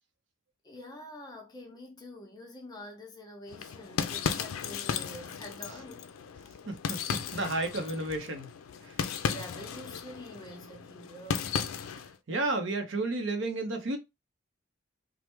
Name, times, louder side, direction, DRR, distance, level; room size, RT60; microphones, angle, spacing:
voice 1, 0.6-6.0 8.8-11.6, left 1 dB, 20° left, 0.6 m, -46 dB
sound 1, 3.5-12.1, left 7 dB, 85° left, 0.4 m, -35 dB
voice 2, 6.7-8.5 8.8-9.0 12.3-14.0, right 2 dB, 65° right, 0.6 m, -32 dB
3.1 x 2.0 x 2.9 m
head